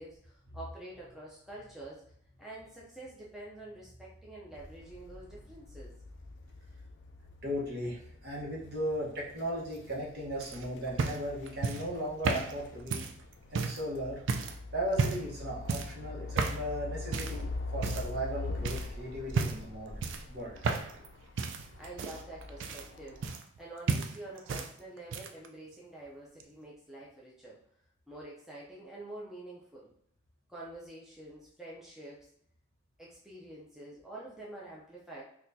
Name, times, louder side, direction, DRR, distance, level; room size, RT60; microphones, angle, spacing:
voice 1, 0.0-2.0 2.4-5.9 21.8-23.2 23.6-27.6 28.1-29.9 30.5-32.3 33.0-35.2, right 2 dB, ahead, -6 dB, 0.4 m, -47 dB
sound 1, 4.6-23.3, left 2 dB, 65° left, 0.4 m, -44 dB
voice 2, 7.4-13.0 13.5-14.2 14.7-17.4 17.7-20.6, equal, 50° right, -4 dB, 0.9 m, -36 dB
sound 2, 10.4-13.8 14.3-14.6 14.9-15.3 15.7-16.0 16.4-16.7 17.1-17.4 17.8-18.3 18.6-18.9 19.3-19.7 20.0-21.1 21.4-23.6 23.9-24.7 25.0-25.5 26.4-26.5, right 4 dB, 70° right, 0.3 m, -33 dB
4.1 x 2.3 x 2.6 m, 0.69 s
head